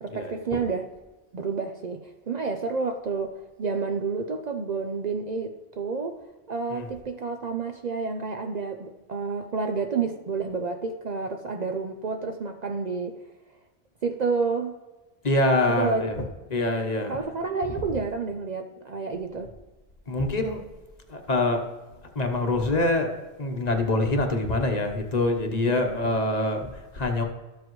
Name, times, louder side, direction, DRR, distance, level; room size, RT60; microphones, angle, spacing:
voice 1, 0.0-0.9 1.3-3.3 3.6-6.2 6.5-13.2 14.0-14.7 15.7-16.3 17.1-19.5 25.7-26.0, right 4 dB, 50° right, 5 dB, 0.6 m, -30 dB
voice 2, 15.2-15.9 16.5-17.1 20.1-20.6 21.1-21.6 22.2-26.7 26.9-27.2, left 2 dB, 40° left, 4 dB, 1.0 m, -24 dB
13.0 x 7.6 x 3.1 m, 1.2 s
omnidirectional pair, 1.1 m